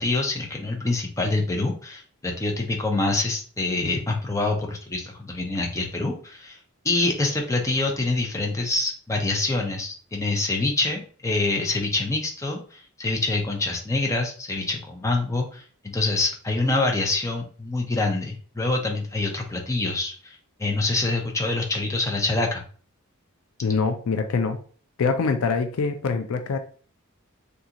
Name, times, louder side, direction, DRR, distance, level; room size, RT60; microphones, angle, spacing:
voice 1, 0.0-6.6 6.8-22.6, left 2 dB, 15° left, 0 dB, 0.5 m, -26 dB
voice 2, 23.6-24.6 25.0-26.6, left 4 dB, 65° left, 7 dB, 0.4 m, -24 dB
3.7 x 2.4 x 2.8 m, 0.42 s
head